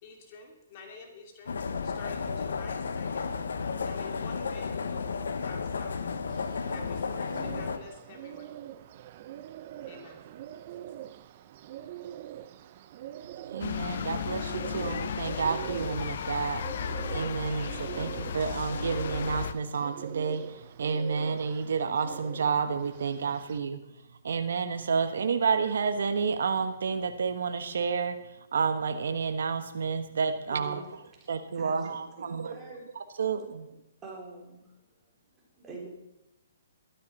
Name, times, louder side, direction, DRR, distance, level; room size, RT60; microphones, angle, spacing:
voice 1, 0.0-1.6 1.8-3.3 3.8-6.2 6.7-8.6 9.9-10.2, left 4 dB, 40° left, 3 dB, 2.6 m, -48 dB
sound 1, 1.5-7.8, left 5 dB, 80° left, 1.2 m, -33 dB
Bird, 6.3-23.6, right 12 dB, 45° right, 0.7 m, -43 dB
voice 2, 13.5-23.8 24.2-30.8 31.3-33.7, right 5 dB, 70° right, 9 dB, 1.2 m, -30 dB
sound 2, 13.6-19.5, left 7 dB, 60° left, 0.8 m, -35 dB
voice 3, 30.5-30.8 31.2-31.3 31.6-32.9 34.0-34.7 35.5-35.9, right 3 dB, 15° right, -2 dB, 4.2 m, -45 dB
12.5 x 12.5 x 5.4 m, 0.91 s
hypercardioid pair, 145°, 0 cm